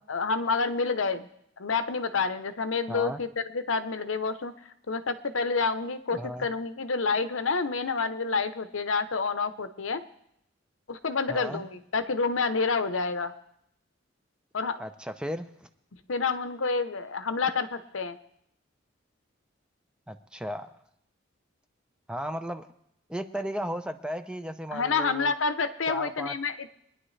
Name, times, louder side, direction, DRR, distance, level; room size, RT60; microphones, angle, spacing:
voice 1, 0.1-1.3 1.6-4.5 4.9-10.0 10.9-13.3 14.5-14.8 16.1-18.2 24.7-26.7, left 4 dB, 85° left, 10 dB, 0.8 m, -28 dB
voice 2, 2.9-3.2 6.1-6.5 11.3-11.6 14.8-15.7 20.1-20.7 22.1-22.7 23.1-25.3 25.9-26.4, equal, 5° right, 8 dB, 0.5 m, -35 dB
23.5 x 10.0 x 3.3 m, 0.75 s
head